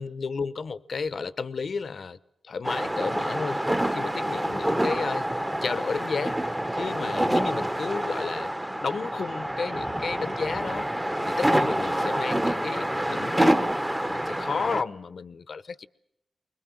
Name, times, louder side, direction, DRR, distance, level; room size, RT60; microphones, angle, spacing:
voice 1, 0.0-2.2 2.4-5.3 5.6-8.5 8.8-10.9 11.2-13.6 14.0-15.9, left 5 dB, 60° left, 0.9 m, -32 dB
sound 1, 2.6-14.8, right 1 dB, 10° right, 1.0 m, -27 dB
25.0 x 21.5 x 7.5 m
cardioid pair, 75°, 0 cm